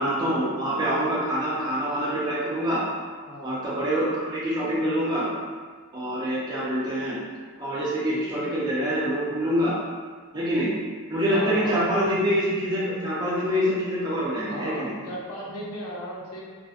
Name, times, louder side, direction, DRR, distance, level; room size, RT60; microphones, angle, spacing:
voice 1, 0.0-2.8 3.4-5.3 5.9-7.2 7.6-9.8 10.3-10.7 11.1-14.9, equal, 20° right, -7 dB, 0.5 m, -25 dB
voice 2, 3.3-3.7 11.3-12.0 14.4-16.4, equal, 80° left, -4 dB, 0.6 m, -36 dB
2.6 x 2.2 x 2.4 m, 1.6 s
head